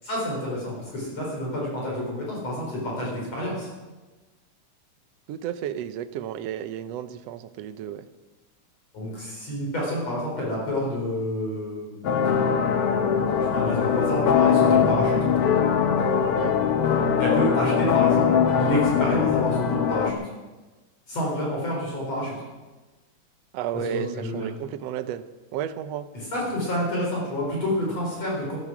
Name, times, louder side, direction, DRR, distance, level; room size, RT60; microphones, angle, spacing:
voice 1, 0.0-3.7 8.9-12.0 13.3-15.3 17.2-20.2 21.1-22.4 23.7-24.5 26.1-28.6, equal, 50° left, -3 dB, 5.3 m, -28 dB
voice 2, 5.3-8.1 16.4-16.6 23.5-25.2 25.5-26.1, right 10 dB, 90° right, 10 dB, 1.4 m, -32 dB
sound 1, 12.0-20.1, left 7 dB, 80° left, 1.3 m, -21 dB
15.0 x 13.5 x 6.0 m, 1.2 s
omnidirectional pair, 3.9 m